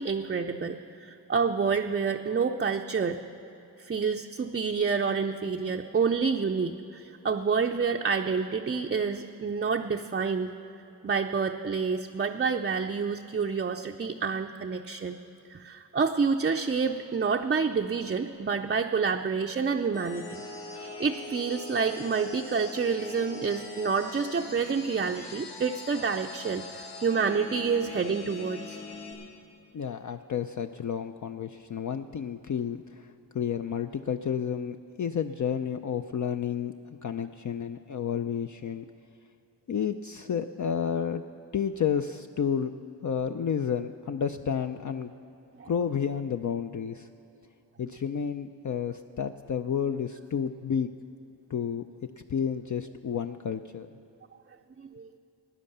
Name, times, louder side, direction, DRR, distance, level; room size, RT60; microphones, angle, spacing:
voice 1, 0.0-3.2 3.8-10.5 11.0-15.2 15.5-20.4 20.7-28.8 45.6-45.7 54.8-55.1, right 5 dB, 25° right, 3 dB, 0.5 m, -28 dB
sound 1, 19.9-29.1, left 2 dB, 70° left, 3.7 m, -42 dB
voice 2, 29.7-36.7 37.0-38.8 39.7-41.2 41.5-42.7 43.0-45.1 45.6-47.1 47.8-50.9 51.5-51.8 52.3-53.9, left 7 dB, 45° left, 7 dB, 0.5 m, -31 dB
15.5 x 9.9 x 6.7 m, 2.9 s
wide cardioid pair, 85°, 42 cm